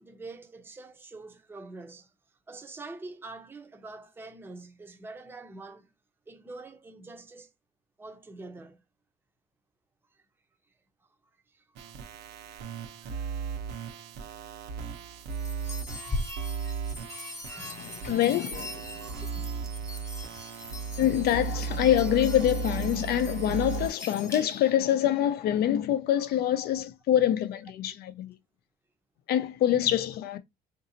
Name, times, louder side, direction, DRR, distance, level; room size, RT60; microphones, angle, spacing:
voice 1, 0.0-2.1 2.5-5.9 6.3-7.5 8.0-8.8 11.5-11.6 13.0-13.4 17.6-17.8 19.4-19.7, right 3 dB, 15° right, 0.6 m, -45 dB
sound 1, 11.8-23.9, right 6 dB, 80° right, 0.8 m, -36 dB
sound 2, 15.3-24.8, left 2 dB, 15° left, 0.8 m, -41 dB
voice 2, 17.6-18.8 21.0-28.3 29.3-30.4, left 11 dB, 70° left, 0.6 m, -25 dB
3.8 x 2.6 x 2.7 m
cardioid pair, 110°, 17 cm